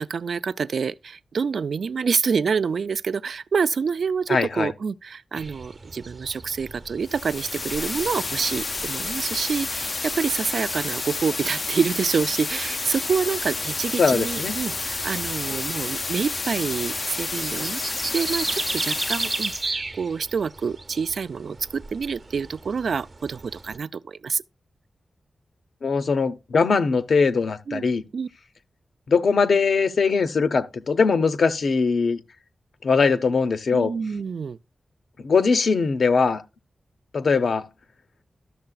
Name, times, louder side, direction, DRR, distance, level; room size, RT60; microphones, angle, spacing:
voice 1, 0.0-17.8 18.1-24.4 27.7-27.9 28.1-28.3 33.7-34.6, right 5 dB, 75° right, 0.3 m, -27 dB
voice 2, 4.3-4.7 14.0-14.6 25.8-28.0 29.1-32.2 32.8-33.9 35.2-36.4 37.1-37.6, left 5 dB, 75° left, 0.8 m, -21 dB
sound 1, 5.3-23.8, right 3 dB, 45° right, 0.7 m, -37 dB
sound 2, 7.0-19.7, left 3 dB, 45° left, 0.4 m, -30 dB
12.5 x 6.7 x 2.3 m
wide cardioid pair, 85°, 0 cm